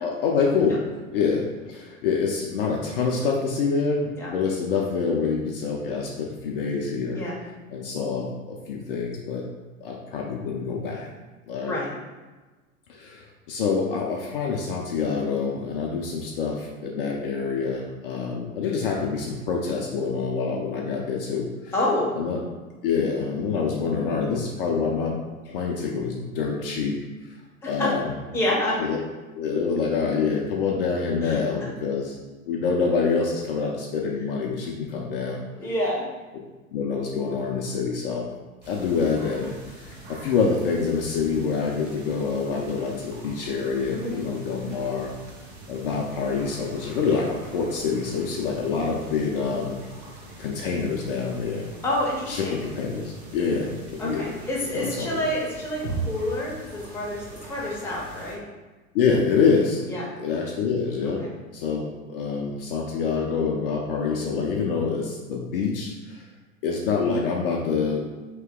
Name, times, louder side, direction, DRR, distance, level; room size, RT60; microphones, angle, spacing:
voice 1, 0.0-0.8 1.1-7.2 7.7-9.4 9.8-11.1 11.5-11.8 12.9-21.7 22.2-22.4 22.8-25.2 25.4-27.0 27.7-28.1 28.8-29.0 29.3-32.2 32.5-35.4 36.7-38.3 38.7-45.1 45.7-49.8 50.4-51.7 52.3-54.2 54.7-55.2 58.9-61.2 61.5-66.3 66.6-68.1, left 5 dB, 45° left, -1 dB, 0.5 m, -26 dB
voice 2, 21.7-22.1 27.6-27.9 28.3-28.8 31.2-31.4 35.6-36.0 43.9-44.2 51.8-52.6 54.0-58.4 59.9-60.1, left 1 dB, 5° left, -5 dB, 0.6 m, -28 dB
sound 1, 38.6-58.4, right 2 dB, 20° right, 0.8 m, -41 dB
2.9 x 2.8 x 3.6 m, 1.2 s
figure-of-eight pair, 95°, 41 cm